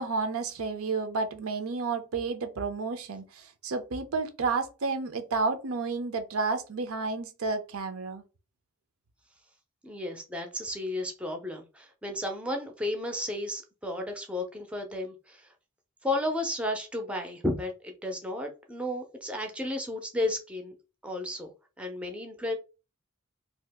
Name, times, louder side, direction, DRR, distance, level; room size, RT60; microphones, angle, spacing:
voice 1, 0.0-8.2, right 4 dB, 85° right, 0.6 m, -31 dB
voice 2, 9.8-15.5 16.0-20.7 21.0-21.5 21.8-22.6, left 1 dB, 5° right, 0.4 m, -33 dB
2.7 x 2.3 x 3.4 m
head